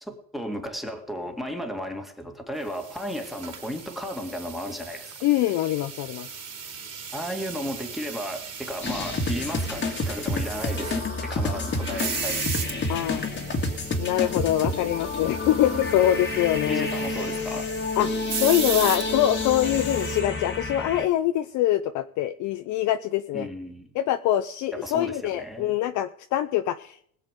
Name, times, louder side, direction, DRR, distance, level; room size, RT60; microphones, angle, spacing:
voice 1, 0.0-5.1 7.1-12.9 15.6-15.9 16.7-17.7 23.3-23.9 24.7-25.8, equal, ahead, 4 dB, 2.1 m, -34 dB
sound 1, 2.7-20.2, right 6 dB, 30° right, 3.8 m, -37 dB
voice 2, 5.2-6.3 12.9-13.3 14.0-16.9 18.0-23.5 23.9-27.0, left 12 dB, 40° left, 10 dB, 0.6 m, -24 dB
sound 2, 8.8-21.1, left 3 dB, 25° left, 1.9 m, -29 dB
sound 3, 15.5-20.5, right 6 dB, 60° right, 0.9 m, -39 dB
20.5 x 7.6 x 5.2 m, 0.63 s
supercardioid pair, 115°, 46 cm